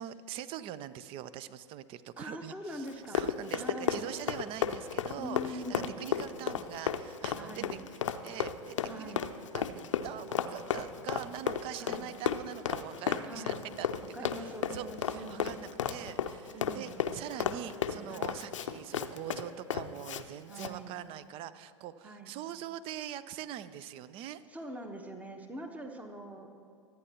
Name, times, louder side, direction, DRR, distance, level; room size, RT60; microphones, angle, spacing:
voice 1, 0.0-7.8 8.2-9.1 9.5-14.0 14.3-24.4, right 11 dB, 35° right, 16 dB, 0.5 m, -43 dB
voice 2, 2.2-3.3 3.6-4.0 5.2-6.0 7.4-7.8 8.9-9.3 11.8-12.1 13.3-13.6 14.1-15.5 16.5-17.0 18.1-18.3 20.5-20.9 22.0-22.3 24.5-26.6, equal, 10° right, 5 dB, 1.0 m, -43 dB
Run, 2.9-20.2 20.5-20.7, left 8 dB, 75° left, 0.6 m, -33 dB
24.5 x 9.1 x 2.9 m, 2.2 s
figure-of-eight pair, 95°, 16 cm